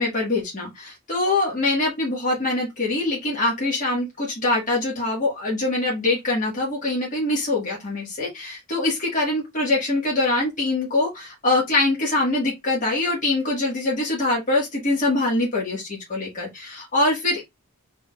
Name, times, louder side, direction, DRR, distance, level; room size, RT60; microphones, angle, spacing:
voice 1, 0.0-17.4, left 2 dB, 35° left, 1.6 m, -23 dB
3.9 x 3.7 x 2.4 m
head